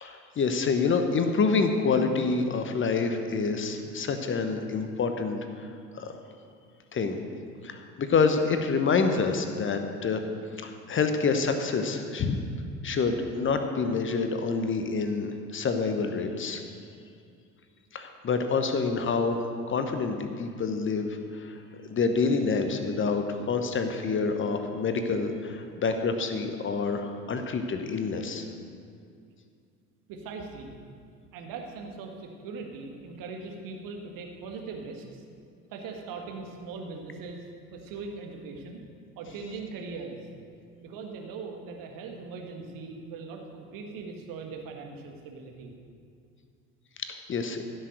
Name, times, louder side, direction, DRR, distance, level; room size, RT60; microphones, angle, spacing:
voice 1, 0.0-6.1 6.9-7.2 7.6-10.2 10.6-12.4 12.8-16.6 17.9-19.4 19.7-21.6 21.9-28.5 47.0-47.6, left 4 dB, 25° left, 7 dB, 1.0 m, -27 dB
voice 2, 30.1-30.7 31.3-35.2 35.7-37.4 37.7-38.8 39.2-40.3 40.8-45.7, right 4 dB, 45° right, 3 dB, 1.7 m, -40 dB
15.5 x 6.4 x 6.5 m, 2.4 s
figure-of-eight pair, 60°, 45 cm